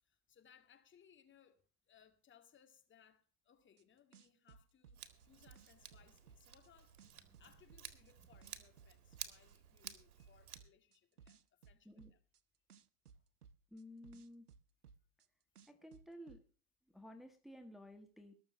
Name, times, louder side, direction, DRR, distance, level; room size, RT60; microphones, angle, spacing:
voice 1, 0.0-7.1 7.4-12.2 13.1-13.2, left 8 dB, 25° left, 2.1 m, -68 dB
sound 1, 3.8-3.9 4.1-6.7 7.0-9.5 9.8-12.4 12.7-15.3 15.6-16.4, right 6 dB, 90° right, 0.8 m, -61 dB
Scissors, 4.9-10.6, right 9 dB, 70° right, 1.9 m, -54 dB
voice 2, 13.7-14.5 15.7-16.4 16.9-18.3, equal, ahead, 1.4 m, -54 dB
20.5 x 7.0 x 6.2 m
hypercardioid pair, 90°, 44 cm